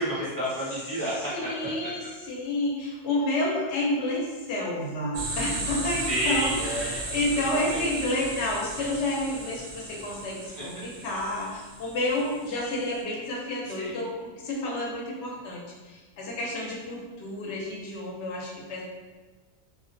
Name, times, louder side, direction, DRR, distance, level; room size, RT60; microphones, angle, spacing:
voice 1, 0.0-1.5 6.0-7.4 7.7-7.9 10.6-10.7 13.8-14.0, equal, 20° left, -10 dB, 0.6 m, -30 dB
voice 2, 1.3-18.8, left 1 dB, 65° left, -4 dB, 0.8 m, -30 dB
sound 1, 5.1-12.9, right 2 dB, 65° right, 0.6 m, -36 dB
2.4 x 2.1 x 2.6 m, 1.3 s
omnidirectional pair, 1.4 m